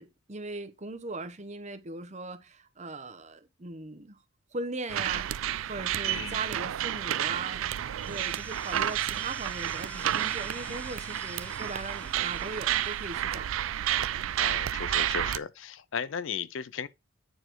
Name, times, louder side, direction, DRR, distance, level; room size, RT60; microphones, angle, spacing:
voice 1, 0.0-4.2 4.5-7.6 8.1-13.5, right 2 dB, 35° right, 0.9 m, -39 dB
sound 1, 4.9-15.4, right 11 dB, 75° right, 0.4 m, -31 dB
voice 2, 6.0-6.4 14.4-16.9, left 7 dB, 65° left, 0.5 m, -36 dB
sound 2, 8.0-13.2, left 2 dB, 5° left, 0.3 m, -48 dB
9.1 x 4.2 x 4.5 m
head